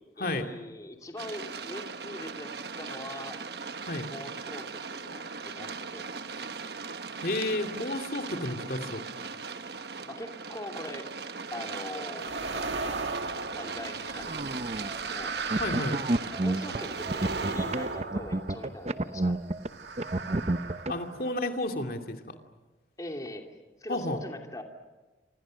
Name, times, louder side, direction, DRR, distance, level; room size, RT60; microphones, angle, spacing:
voice 1, 0.2-3.4 4.1-6.2 10.1-11.1 11.5-12.9 13.5-15.3 16.3-19.4 19.8-19.9 20.3-20.4 20.9-21.0 23.0-23.4 23.8-24.6, left 1 dB, 20° left, 3 dB, 2.7 m, -42 dB
sound 1, 1.2-17.5, right 5 dB, 65° right, 1.2 m, -39 dB
voice 2, 7.2-9.0 15.5-16.0 20.9-22.2 23.9-24.2, left 1 dB, 55° left, 5 dB, 2.6 m, -31 dB
sound 2, 12.2-19.0 19.6-21.5, right 4 dB, 85° right, 1.9 m, -37 dB
sound 3, 14.3-15.0 15.5-19.7 20.0-20.9, right 1 dB, 40° right, 0.8 m, -29 dB
29.0 x 26.0 x 6.5 m, 1.2 s
head